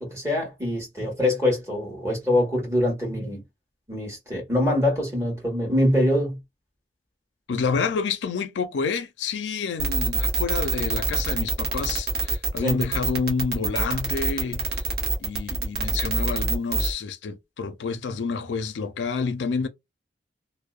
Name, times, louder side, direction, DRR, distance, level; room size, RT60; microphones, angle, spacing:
voice 1, 0.0-3.4 3.9-6.4 12.6-12.8, left 1 dB, 15° right, 1.3 m, -24 dB
voice 2, 7.5-14.7 15.2-19.7, left 5 dB, 85° left, 0.4 m, -28 dB
sound 1, 9.8-16.9, right 3 dB, 55° right, 0.9 m, -25 dB
2.7 x 2.0 x 2.3 m
head